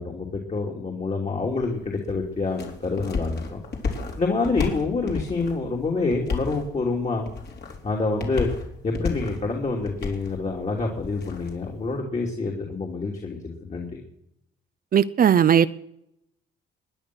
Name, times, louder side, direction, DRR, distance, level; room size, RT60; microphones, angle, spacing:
voice 1, 0.0-3.6 4.2-7.3 7.8-8.5 8.8-14.0, left 3 dB, 35° left, 0 dB, 3.0 m, -27 dB
sound 1, 1.4-12.0, left 4 dB, 55° left, 3.8 m, -34 dB
voice 2, 14.9-15.7, right 8 dB, 45° right, 14 dB, 0.6 m, -17 dB
22.0 x 9.9 x 6.2 m, 0.80 s
cardioid pair, 90°, 20 cm